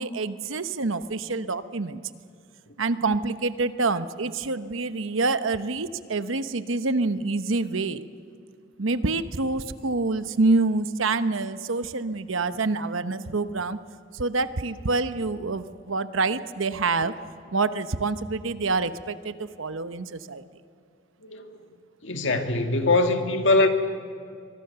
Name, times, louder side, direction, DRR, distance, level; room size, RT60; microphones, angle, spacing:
voice 1, 0.0-2.0 2.8-8.0 8.8-13.8 14.1-17.1 17.5-20.4, right 3 dB, 80° right, 12 dB, 0.9 m, -26 dB
voice 2, 21.2-21.7 22.0-23.7, left 2 dB, 65° left, 5 dB, 2.0 m, -22 dB
24.5 x 22.5 x 6.9 m, 2.3 s
head